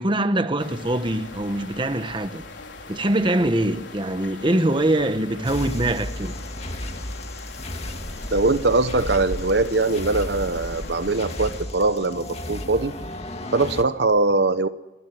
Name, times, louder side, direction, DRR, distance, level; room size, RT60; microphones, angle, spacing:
voice 1, 0.0-2.4 2.9-6.3, right 1 dB, 25° right, 1.3 m, -23 dB
sound 1, 0.6-11.6, left 2 dB, 90° left, 4.1 m, -39 dB
sound 2, 5.4-13.8, left 1 dB, 35° left, 2.2 m, -34 dB
voice 2, 8.3-12.9 13.5-14.7, right 3 dB, 65° right, 0.9 m, -21 dB
28.5 x 20.5 x 7.7 m
head